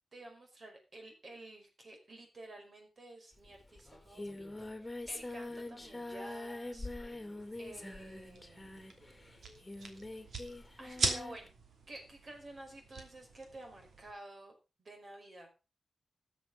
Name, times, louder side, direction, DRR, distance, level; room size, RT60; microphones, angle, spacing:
voice 1, 0.1-6.9 7.6-8.8 10.2-10.4 10.8-11.5 11.9-15.5, right 1 dB, 50° right, 3 dB, 5.0 m, -51 dB
Singing, 3.4-3.5 3.8-11.5, left 2 dB, 20° left, 2.2 m, -44 dB
sound 1, 7.4-14.1, right 3 dB, 85° right, 2.8 m, -42 dB
13.5 x 7.4 x 5.4 m, 0.31 s
cardioid pair, 85°, 0 cm